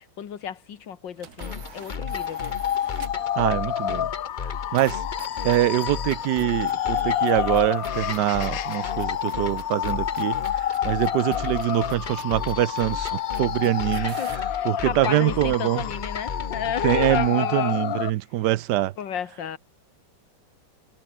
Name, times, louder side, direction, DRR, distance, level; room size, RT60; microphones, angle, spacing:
voice 1, 0.0-2.4 13.9-18.1 19.0-19.6, left 8 dB, 80° left, 2.2 m, -32 dB
sound 1, 1.2-3.3 4.7-14.5, right 9 dB, 60° right, 1.6 m, -48 dB
sound 2, 1.4-17.3, left 5 dB, 35° left, 0.9 m, -35 dB
sound 3, 2.0-18.1, left 10 dB, 60° left, 1.2 m, -29 dB
voice 2, 3.4-4.1 4.7-5.0 5.4-14.2 14.6-15.8 16.8-18.9, right 15 dB, 75° right, 1.2 m, -24 dB
omnidirectional pair, 2.0 m